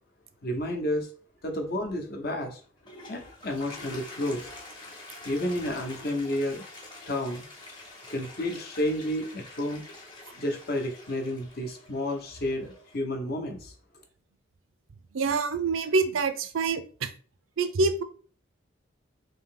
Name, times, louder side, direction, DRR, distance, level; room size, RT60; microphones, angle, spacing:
voice 1, 0.4-1.1 1.4-2.6 3.1-4.5 5.2-6.6 7.1-7.4 8.1-9.8 10.4-13.7, left 1 dB, 50° left, 3 dB, 0.8 m, -31 dB
Toilet flush, 2.6-13.0, left 2 dB, 25° left, 0.9 m, -46 dB
voice 2, 15.1-17.1 17.6-18.0, right 4 dB, 85° right, 10 dB, 0.5 m, -26 dB
3.7 x 2.8 x 3.7 m, 0.42 s
head